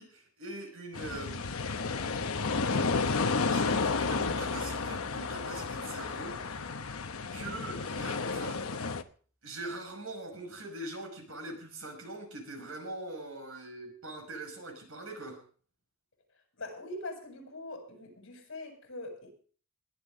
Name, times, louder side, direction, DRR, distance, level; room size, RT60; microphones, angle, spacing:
voice 1, 0.0-1.6 3.2-6.7 7.3-8.8 9.4-15.4, right 2 dB, 70° right, 3 dB, 6.0 m, -43 dB
sound 1, 0.9-9.0, left 4 dB, 75° left, 1.0 m, -32 dB
sound 2, 2.0-7.6 7.9-8.0, equal, 5° left, 4.1 m, -48 dB
voice 2, 16.6-19.3, left 2 dB, 60° left, 2 dB, 7.6 m, -42 dB
21.0 x 12.0 x 3.9 m, 0.43 s
head